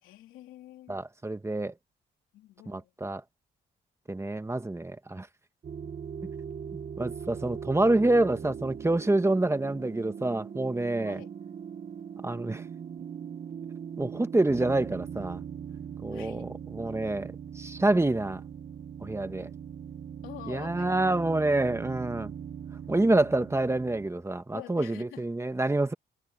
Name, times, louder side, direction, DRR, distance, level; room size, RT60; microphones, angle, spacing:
voice 1, 0.0-1.0 2.3-2.9 5.8-6.1 11.0-11.3 16.1-16.5 20.2-21.0 24.5-25.3, left 14 dB, 90° left, 3.4 m, -47 dB
voice 2, 0.9-1.7 2.7-3.2 4.1-5.3 6.7-11.2 12.2-12.6 14.0-15.4 16.0-18.4 19.0-19.5 20.5-22.3 22.9-25.9, right 2 dB, 15° right, 1.5 m, -27 dB
sound 1, 5.6-24.1, right 7 dB, 45° right, 1.2 m, -40 dB
cardioid pair, 90°, 20 cm